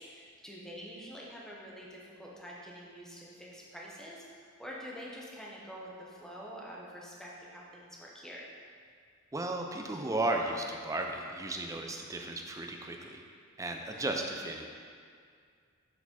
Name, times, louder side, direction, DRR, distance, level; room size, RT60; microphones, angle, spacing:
voice 1, 0.0-8.5 13.9-14.0, equal, 5° left, -5 dB, 0.9 m, -46 dB
voice 2, 9.3-13.2 13.6-14.7, right 2 dB, 15° right, 2 dB, 0.4 m, -34 dB
6.9 x 4.1 x 4.3 m, 2.2 s
head